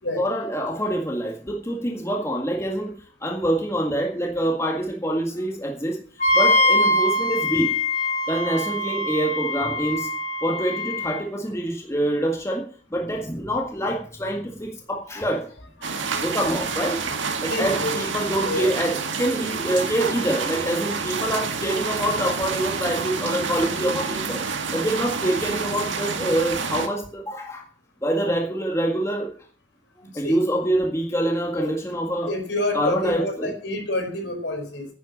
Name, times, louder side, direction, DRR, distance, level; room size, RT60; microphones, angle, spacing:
voice 1, 0.2-2.9 3.2-6.0 6.3-7.7 8.3-10.1 10.4-12.6 12.9-15.4 16.2-17.2 17.4-24.4 24.7-27.6 28.0-29.3 30.2-32.3 32.7-33.5, right 1 dB, 15° left, 0 dB, 1.9 m, -25 dB
Wind instrument woodwind instrument, 6.2-11.2, left 1 dB, 40° left, 2.3 m, -23 dB
sound 1, 15.8-26.9, right 5 dB, 85° right, 2.0 m, -28 dB
voice 2, 17.5-17.9 18.4-18.7 19.8-19.9 30.1-30.4 31.6-31.7 32.3-34.9, left 1 dB, 65° left, 4 dB, 4.7 m, -28 dB
10.5 x 9.3 x 7.2 m, 0.42 s
head